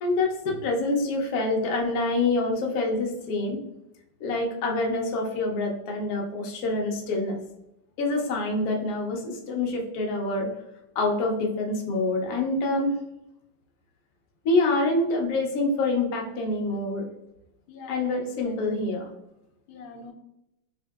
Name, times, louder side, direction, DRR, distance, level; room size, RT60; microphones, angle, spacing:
voice 1, 0.0-3.6 4.2-7.4 8.0-10.5 11.0-12.9 14.4-17.1 17.9-19.1, left 2 dB, 70° left, 1 dB, 0.9 m, -26 dB
voice 2, 17.7-18.6 19.7-20.1, left 4 dB, 90° left, 4 dB, 1.3 m, -45 dB
3.5 x 2.6 x 2.3 m, 0.88 s
omnidirectional pair, 2.1 m